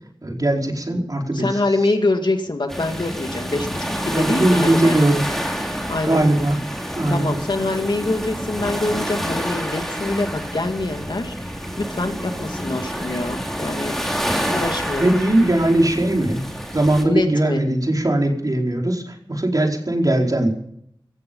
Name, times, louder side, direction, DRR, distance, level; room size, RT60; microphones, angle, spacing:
voice 1, 0.2-1.6 4.1-5.3 6.0-6.6 7.0-7.3 15.0-16.4 16.7-20.5, right 1 dB, 45° right, 1 dB, 4.7 m, -19 dB
voice 2, 1.3-4.9 5.9-6.2 7.1-14.0 14.5-15.1 17.0-17.6, left 2 dB, 65° left, 5 dB, 2.2 m, -24 dB
sound 1, 2.7-17.0, equal, 5° left, 3.8 m, -28 dB
17.5 x 15.0 x 5.5 m, 0.70 s
wide cardioid pair, 65°, 8 cm